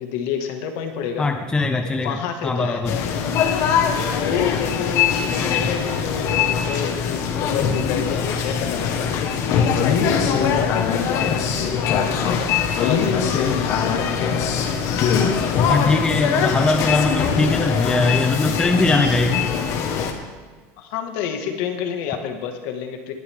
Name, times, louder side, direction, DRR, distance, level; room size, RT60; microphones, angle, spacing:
voice 1, 0.0-1.3 1.8-3.2 4.1-9.1 9.7-14.3 20.8-23.1, left 7 dB, 60° left, 5 dB, 1.8 m, -29 dB
voice 2, 1.2-2.2 2.4-2.9 5.4-5.7 15.7-19.4, left 3 dB, 10° left, 5 dB, 0.7 m, -21 dB
sound 1, 2.8-20.1, left 7 dB, 45° left, 1.4 m, -22 dB
19.5 x 11.0 x 3.6 m, 1.5 s
cardioid pair, 165°, 7 cm